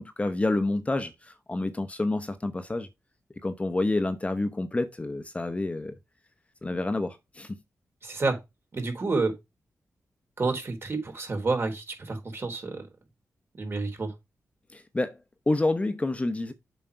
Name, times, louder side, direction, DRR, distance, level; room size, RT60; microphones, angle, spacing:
voice 1, 0.0-2.9 3.4-5.9 6.6-7.6 14.7-15.2 15.5-16.5, left 2 dB, 25° left, 1.0 m, -28 dB
voice 2, 8.0-8.4 8.7-9.3 10.4-12.9 13.6-14.1, right 3 dB, 45° right, 3.4 m, -29 dB
7.6 x 5.2 x 4.6 m
cardioid pair, 85°, 6 cm